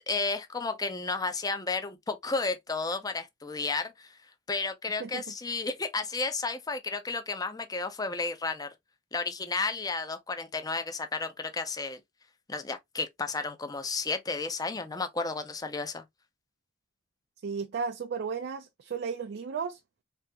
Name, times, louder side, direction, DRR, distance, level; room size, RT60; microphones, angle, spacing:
voice 1, 0.0-4.2 4.5-8.7 9.1-12.0 12.5-16.0, left 3 dB, 20° left, 0.5 m, -32 dB
voice 2, 5.0-5.3 17.4-19.8, right 5 dB, 60° right, 0.4 m, -34 dB
3.5 x 2.8 x 2.7 m
head